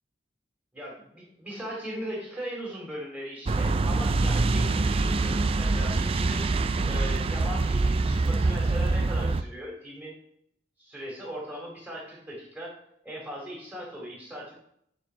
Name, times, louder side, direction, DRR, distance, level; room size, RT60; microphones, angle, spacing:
voice 1, 0.7-6.5 6.8-10.2 10.8-12.8 13.0-14.5, equal, 10° right, -4 dB, 3.6 m, -38 dB
sound 1, 3.5-9.4, right 3 dB, 30° right, 0.4 m, -25 dB
9.9 x 4.5 x 5.5 m, 0.70 s
head